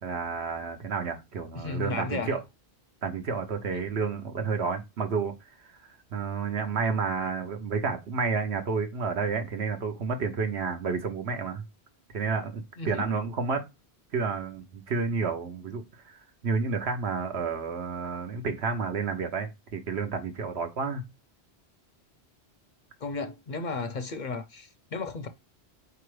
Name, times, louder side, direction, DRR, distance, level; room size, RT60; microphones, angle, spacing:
voice 1, 0.0-2.4 3.0-5.3 6.1-11.6 12.1-13.6 14.1-21.0, right 5 dB, 75° right, 1.2 m, -30 dB
voice 2, 1.5-2.4 12.8-13.1 23.0-25.3, left 4 dB, 55° left, 0.6 m, -34 dB
4.7 x 3.0 x 3.1 m
omnidirectional pair, 1.1 m